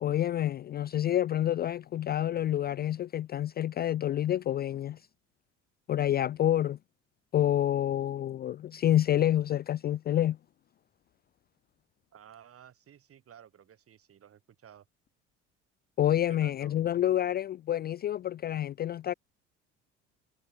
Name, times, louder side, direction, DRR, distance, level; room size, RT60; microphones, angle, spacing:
voice 1, 0.0-5.0 5.9-6.8 7.3-10.4 16.0-19.1, left 12 dB, 30° left, 0.4 m, -28 dB
voice 2, 12.1-14.9 16.3-16.8, right 9 dB, 40° right, 3.1 m, -54 dB
hypercardioid pair, 60°, 35 cm